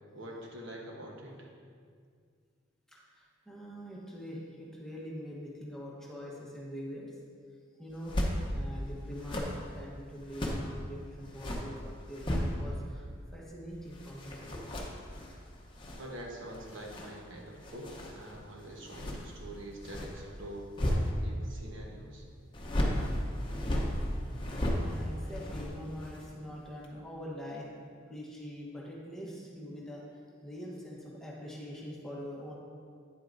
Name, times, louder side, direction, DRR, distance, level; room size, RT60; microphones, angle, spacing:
voice 1, 0.0-1.5 16.0-22.2, right 1 dB, 70° right, -1 dB, 1.1 m, -45 dB
voice 2, 2.9-7.1 7.8-8.2 8.5-13.0 13.3-14.4 24.3-27.8 28.1-30.0 30.4-32.5, equal, 5° left, -5 dB, 1.1 m, -44 dB
sound 1, 7.9-8.4 9.1-10.7 11.2-12.9 13.2-21.6 22.5-26.4 26.7-26.9, equal, 25° left, 0.8 m, -35 dB
9.3 x 8.0 x 2.6 m, 2.1 s
head